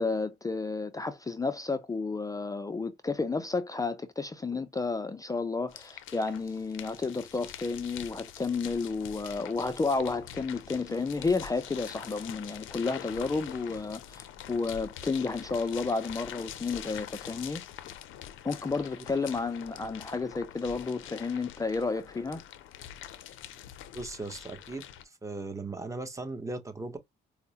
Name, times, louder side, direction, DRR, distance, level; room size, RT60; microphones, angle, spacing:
voice 1, 0.0-17.6 18.4-22.4, left 4 dB, 20° left, 0.4 m, -31 dB
sound 1, 5.7-25.0, left 11 dB, 80° left, 0.5 m, -45 dB
voice 2, 23.9-27.0, right 2 dB, 15° right, 0.8 m, -38 dB
4.4 x 2.0 x 2.7 m
cardioid pair, 90°, 20 cm